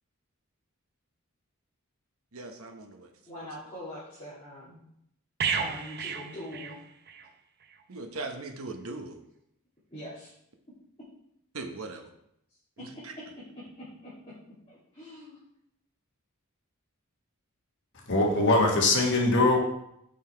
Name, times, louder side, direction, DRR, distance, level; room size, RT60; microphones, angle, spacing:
voice 1, 2.3-3.1 3.4-3.5 7.9-9.2 11.5-12.1 12.8-13.1, right 3 dB, 75° right, 1.0 m, -39 dB
voice 2, 3.3-4.8 5.6-6.8 9.9-10.3 12.8-13.0 13.5-14.1 14.7-15.4, left 1 dB, 25° left, 2.6 m, -43 dB
sound 1, 5.4-7.3 7.6-7.8, right 6 dB, 50° right, 0.6 m, -32 dB
voice 3, 18.1-19.6, left 2 dB, 55° left, 1.4 m, -22 dB
5.8 x 5.4 x 4.4 m
head